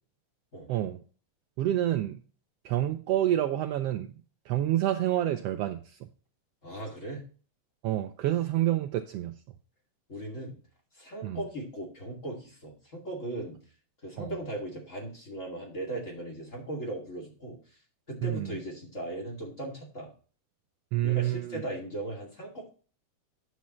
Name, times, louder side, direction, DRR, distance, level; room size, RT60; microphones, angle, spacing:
voice 1, 1.6-2.2 2.6-4.1 4.5-6.1 7.8-9.3 11.2-11.4 14.2-14.3 18.2-18.6 20.9-21.6, right 13 dB, 90° right, 7 dB, 1.3 m, -28 dB
voice 2, 6.6-7.2 10.1-10.6 11.0-13.6 14.0-17.6 18.1-20.1 21.0-22.7, right 1 dB, 25° left, -1 dB, 2.5 m, -38 dB
9.5 x 7.3 x 3.0 m, 0.39 s
omnidirectional pair, 3.4 m